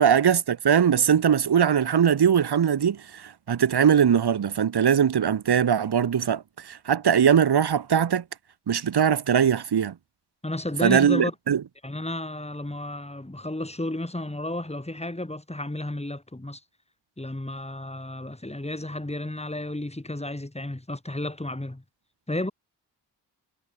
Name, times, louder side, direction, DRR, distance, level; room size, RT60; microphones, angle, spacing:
voice 1, 0.0-8.2 8.7-10.0 10.8-11.6, right 8 dB, 60° right, 1.9 m, -21 dB
voice 2, 10.4-11.3 11.8-16.6 17.2-21.8 22.3-22.5, left 1 dB, 15° left, 7.5 m, -32 dB
cardioid pair, 50°, 44 cm